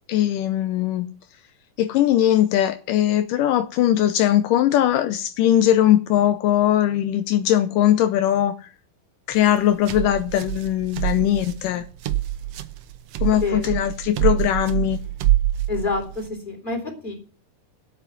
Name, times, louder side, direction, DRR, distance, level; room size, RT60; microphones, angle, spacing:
voice 1, 0.1-1.1 1.8-8.7 9.3-11.8 13.2-15.0, left 12 dB, 80° left, 11 dB, 2.3 m, -20 dB
sound 1, 9.3-16.3, right 14 dB, 70° right, 1.5 m, -26 dB
voice 2, 13.3-13.8 15.7-17.1, left 3 dB, 15° left, 1 dB, 3.9 m, -28 dB
8.8 x 8.6 x 9.4 m, 0.39 s
omnidirectional pair, 3.9 m